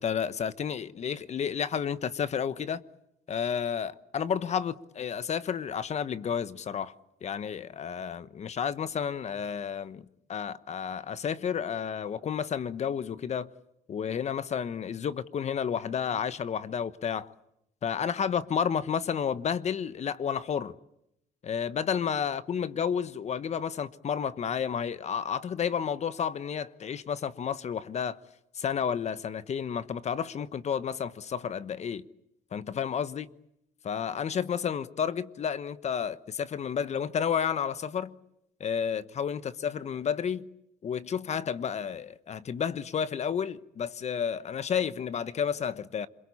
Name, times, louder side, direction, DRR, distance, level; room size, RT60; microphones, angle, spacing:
voice 1, 0.0-2.8 3.3-6.9 7.2-10.0 10.3-13.5 13.9-17.3 17.8-20.7 21.4-28.2 28.5-32.1 32.5-33.3 33.8-38.1 38.6-40.5 40.8-46.1, left 7 dB, 40° left, 1.1 m, -31 dB
27.0 x 22.5 x 8.6 m
cardioid pair, 110°, 17 cm